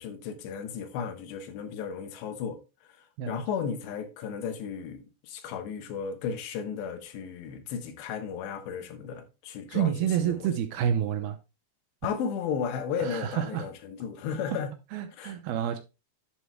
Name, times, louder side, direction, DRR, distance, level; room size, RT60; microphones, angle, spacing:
voice 1, 0.0-2.6 3.3-10.5 12.0-14.7 15.2-15.4, left 7 dB, 80° left, 3.3 m, -34 dB
voice 2, 9.7-11.4 13.0-13.7 14.9-15.8, right 9 dB, 80° right, 2.3 m, -28 dB
11.5 x 7.8 x 2.2 m
omnidirectional pair, 5.0 m